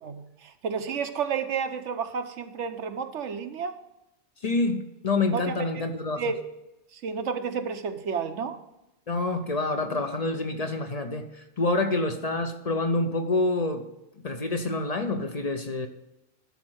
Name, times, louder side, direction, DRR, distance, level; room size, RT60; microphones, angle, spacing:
voice 1, 0.0-3.8 5.3-5.7 6.2-6.4 6.9-8.6, right 6 dB, 85° right, 8 dB, 1.2 m, -31 dB
voice 2, 4.4-6.2 9.1-13.8 14.2-15.9, left 2 dB, 35° left, 6 dB, 0.8 m, -27 dB
12.5 x 4.3 x 7.9 m, 0.93 s
omnidirectional pair, 1.2 m